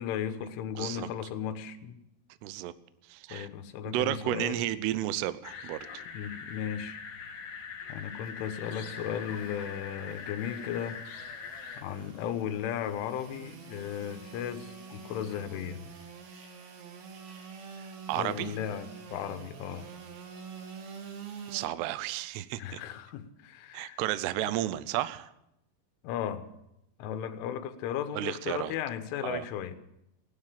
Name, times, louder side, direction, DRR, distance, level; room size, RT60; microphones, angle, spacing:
voice 1, 0.0-2.0 3.3-4.6 6.1-7.0 7.9-11.0 11.8-15.9 18.1-19.9 22.6-24.0 26.0-26.5 27.0-29.8, left 9 dB, 85° left, 8 dB, 3.4 m, -36 dB
voice 2, 0.8-1.1 2.4-2.7 3.1-3.5 3.9-5.9 18.1-18.6 21.5-22.8 23.7-25.3 28.1-28.7 29.2-29.5, right 14 dB, 85° right, 15 dB, 2.3 m, -32 dB
sound 1, 5.4-11.8, left 6 dB, 55° left, 2.5 m, -42 dB
Engine / Sawing, 7.9-21.7, right 6 dB, 65° right, 1.9 m, -47 dB
16.0 x 11.5 x 7.4 m, 0.83 s
omnidirectional pair, 5.6 m